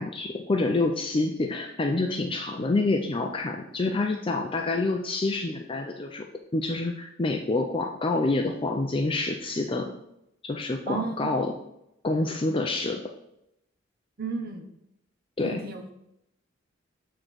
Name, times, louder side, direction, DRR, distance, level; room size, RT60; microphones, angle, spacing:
voice 1, 0.0-6.3 6.5-9.9 10.4-11.5 12.0-13.0 15.4-15.6, left 2 dB, 25° left, 3 dB, 0.5 m, -27 dB
voice 2, 10.9-11.3 14.2-14.7 15.4-15.9, right 4 dB, 50° right, 5 dB, 0.9 m, -33 dB
7.0 x 3.8 x 6.1 m, 0.82 s
head